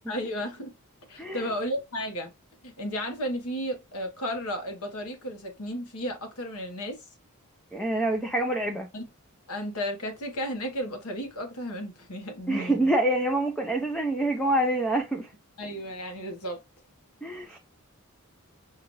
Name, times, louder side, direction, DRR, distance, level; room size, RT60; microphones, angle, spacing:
voice 1, 0.1-0.7 1.1-2.3 2.6-7.0 8.9-9.0 9.5-12.8 15.6-16.6, equal, 80° left, 1.2 m, -33 dB
voice 2, 7.7-8.9 12.5-15.3 17.2-17.6, right 1 dB, 5° left, 0.5 m, -26 dB
5.7 x 2.5 x 3.0 m
head